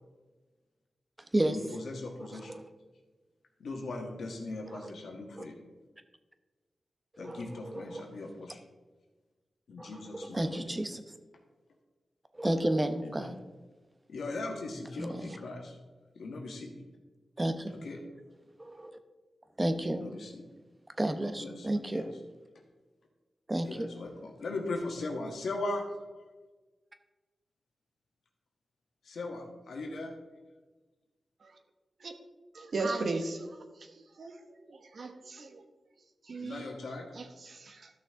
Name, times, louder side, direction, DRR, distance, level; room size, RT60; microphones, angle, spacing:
voice 1, 1.5-2.5 3.6-5.5 7.2-8.6 9.7-10.8 13.0-13.3 14.1-15.8 16.1-16.7 17.8-18.0 19.9-20.4 21.2-22.1 23.6-25.8 29.0-30.1 36.4-37.1, left 2 dB, 85° left, 2 dB, 1.6 m, -39 dB
voice 2, 2.2-2.6 4.7-4.9 5.4-5.5 7.2-7.4 7.7-8.1 9.8-11.0 12.3-13.4 15.0-15.4 17.4-17.7 18.6-18.9 19.6-20.0 21.0-22.1 23.5-23.9, right 1 dB, 20° right, 8 dB, 0.8 m, -32 dB
voice 3, 32.5-33.5 34.2-35.6 36.3-36.7 37.1-37.9, right 3 dB, 65° right, 6 dB, 1.1 m, -36 dB
13.0 x 6.1 x 3.7 m, 1.3 s
cardioid pair, 75°, 0 cm